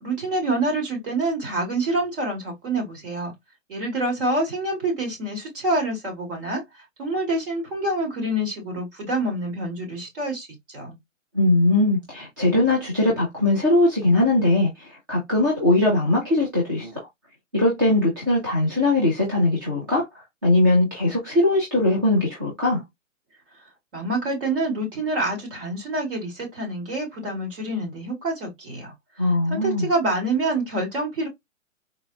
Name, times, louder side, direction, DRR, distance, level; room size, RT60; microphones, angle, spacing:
voice 1, 0.0-3.3 3.7-6.6 7.0-11.0 23.9-28.9 29.2-31.3, right 2 dB, 45° right, 1.9 m, -27 dB
voice 2, 11.3-17.0 17.5-20.1 20.4-22.8 29.2-29.9, left 2 dB, 15° right, 0.5 m, -20 dB
3.9 x 2.2 x 2.4 m
hypercardioid pair, 160°, 39 cm